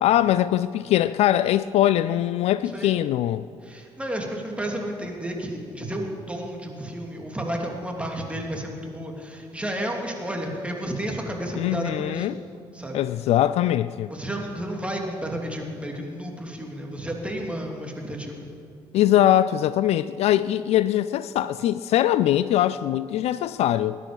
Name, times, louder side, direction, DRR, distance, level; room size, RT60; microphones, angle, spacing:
voice 1, 0.0-3.4 11.6-12.4 12.9-14.1 18.9-24.0, left 12 dB, 50° left, 0.4 m, -22 dB
voice 2, 3.6-12.4 12.7-13.0 14.1-18.4, right 1 dB, 10° right, 3.0 m, -32 dB
19.5 x 10.5 x 5.4 m
figure-of-eight pair, 40°, 13 cm